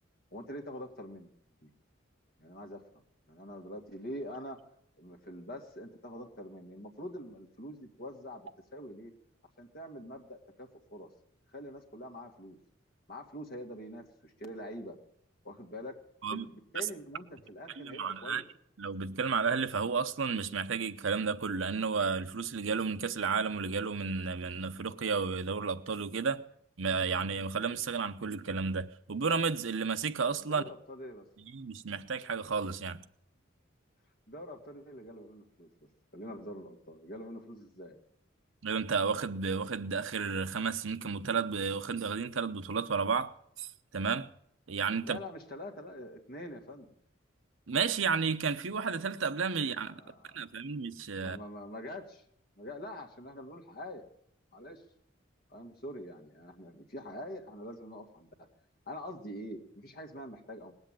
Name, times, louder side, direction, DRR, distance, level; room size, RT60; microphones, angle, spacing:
voice 1, 0.3-1.3 1.6-1.7 2.4-2.8 3.3-4.6 5.0-9.1 9.6-11.1 11.5-12.6 13.1-15.0 15.4-15.9 16.3-18.5 30.5-31.5 34.3-35.7 36.1-38.0 45.0-46.9 49.9-50.5 51.2-52.2 52.6-54.0 54.5-54.8 55.5-58.3 58.9-60.7, equal, 50° left, 2.0 m, -45 dB
voice 2, 17.8-18.4 18.8-26.4 26.8-30.6 31.5-33.0 38.6-43.3 43.6-44.3 44.7-45.2 47.7-50.0 50.3-51.4, right 5 dB, 75° right, 0.8 m, -32 dB
19.0 x 8.1 x 9.0 m
head